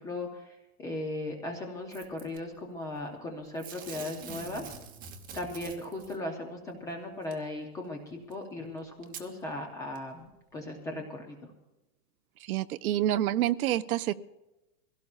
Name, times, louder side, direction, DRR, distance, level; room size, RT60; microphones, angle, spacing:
voice 1, 0.0-4.6 5.3-11.4, left 2 dB, 5° left, 2 dB, 0.4 m, -37 dB
Packing tape duct tape / Tearing, 1.9-2.4 3.6-6.2 7.3-7.4 8.3-8.4 9.0-9.3 9.9-10.0, right 6 dB, 15° right, 0.9 m, -44 dB
voice 2, 12.5-14.1, right 13 dB, 60° right, 13 dB, 0.7 m, -27 dB
22.5 x 16.5 x 2.4 m, 0.99 s
hypercardioid pair, 150°, 49 cm